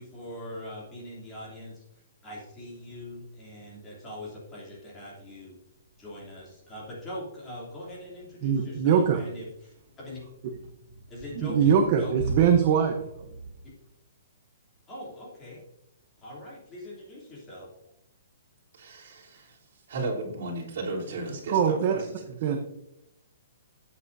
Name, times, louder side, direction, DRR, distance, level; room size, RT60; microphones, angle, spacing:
voice 1, 0.0-5.5 6.0-10.2 11.1-11.6 12.0-12.1 12.6-12.9 14.9-15.6 16.2-17.7, left 1 dB, 15° left, -5 dB, 3.0 m, -42 dB
sound 1, 5.4-13.6, right 3 dB, 75° right, 2.0 m, -41 dB
voice 2, 8.4-9.2 11.3-13.0 21.5-22.1 22.4-22.6, right 7 dB, 35° right, 4 dB, 0.9 m, -22 dB
voice 3, 18.7-19.6 19.9-22.1, right 2 dB, 50° right, -4 dB, 3.4 m, -34 dB
13.0 x 8.9 x 2.7 m, 0.84 s
hypercardioid pair, 170°, 0 cm